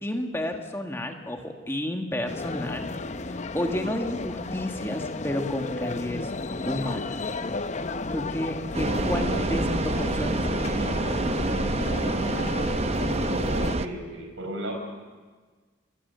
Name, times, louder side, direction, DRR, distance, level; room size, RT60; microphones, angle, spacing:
voice 1, 0.0-2.9 3.3-6.3 6.7-7.2 8.1-10.9, left 1 dB, 10° left, 4 dB, 1.7 m, -31 dB
sound 1, 2.3-13.8, left 3 dB, 35° left, 0.6 m, -33 dB
sound 2, 8.7-13.9, right 2 dB, 30° right, 0.7 m, -27 dB
voice 2, 13.5-14.7, right 1 dB, 85° right, 3 dB, 4.8 m, -35 dB
28.0 x 20.5 x 6.9 m, 1.4 s
head